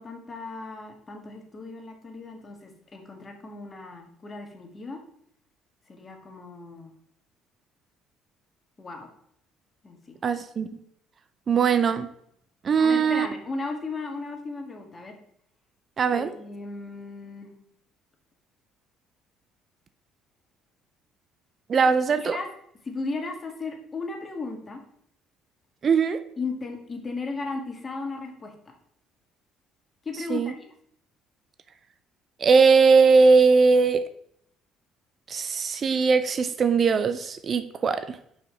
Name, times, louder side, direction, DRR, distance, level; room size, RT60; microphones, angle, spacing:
voice 1, 0.0-5.0 5.9-6.9 8.8-9.1 9.8-10.2 12.8-15.2 16.1-17.5 22.2-22.5 22.8-24.8 26.4-28.5 30.1-30.5, left 3 dB, 30° left, 1.8 m, -36 dB
voice 2, 10.2-10.7 11.5-12.1 12.6-13.3 16.0-16.3 21.7-22.4 25.8-26.2 30.3-30.5 32.4-34.0 35.3-38.2, right 5 dB, 45° right, 0.5 m, -20 dB
5.4 x 5.0 x 5.6 m
hypercardioid pair, 60°, 0 cm